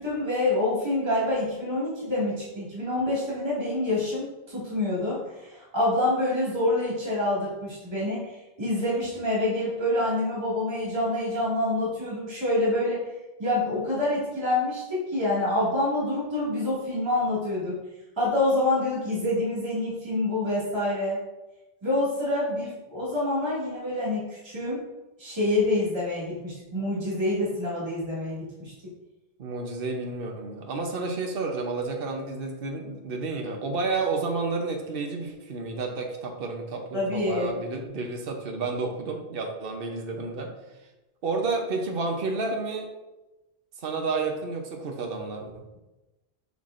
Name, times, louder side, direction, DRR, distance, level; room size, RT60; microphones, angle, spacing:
voice 1, 0.0-13.1 13.4-17.8 18.2-21.2 21.8-24.8 25.2-28.7 36.9-37.5, left 1 dB, 25° right, -8 dB, 2.1 m, -27 dB
voice 2, 29.4-40.5 41.2-42.9 43.8-45.6, right 3 dB, 65° right, 2 dB, 1.0 m, -30 dB
7.1 x 5.9 x 2.5 m, 1.0 s
omnidirectional pair, 1.0 m